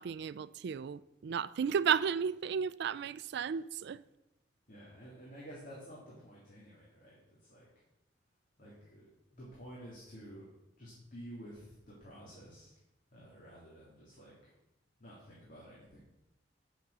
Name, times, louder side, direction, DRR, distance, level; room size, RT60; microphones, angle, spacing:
voice 1, 0.0-4.0, right 7 dB, 65° right, 0.4 m, -33 dB
voice 2, 4.7-7.2 7.5-7.7 8.6-9.1 9.3-10.5 10.8-12.7 13.1-14.3 15.0-16.0, equal, 50° left, 3.2 m, -51 dB
9.4 x 7.2 x 6.8 m
head